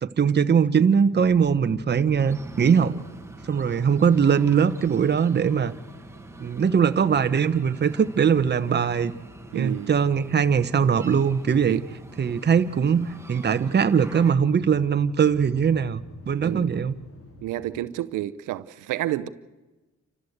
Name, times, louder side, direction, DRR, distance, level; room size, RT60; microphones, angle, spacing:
voice 1, 0.0-3.0 3.5-5.7 6.4-9.1 9.5-11.8 12.2-17.0, right 7 dB, 35° right, 1.0 m, -21 dB
sound 1, 1.2-17.8, left 2 dB, 50° left, 3.4 m, -50 dB
sound 2, 2.2-14.3, right 2 dB, 10° right, 1.7 m, -45 dB
voice 2, 9.5-9.9 11.6-11.8 16.4-16.7 17.4-19.3, right 14 dB, 90° right, 0.8 m, -30 dB
28.0 x 14.0 x 8.1 m
cardioid pair, 90°, 30 cm